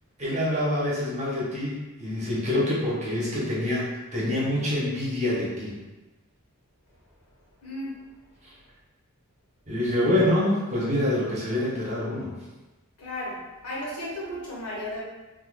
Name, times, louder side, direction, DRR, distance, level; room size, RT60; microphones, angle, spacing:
voice 1, 0.2-5.7 9.7-12.3, left 1 dB, 30° right, -7 dB, 1.0 m, -26 dB
voice 2, 7.6-8.0 13.0-13.4 13.6-15.0, left 1 dB, 80° left, -5 dB, 1.1 m, -34 dB
2.7 x 2.3 x 3.9 m, 1.1 s
head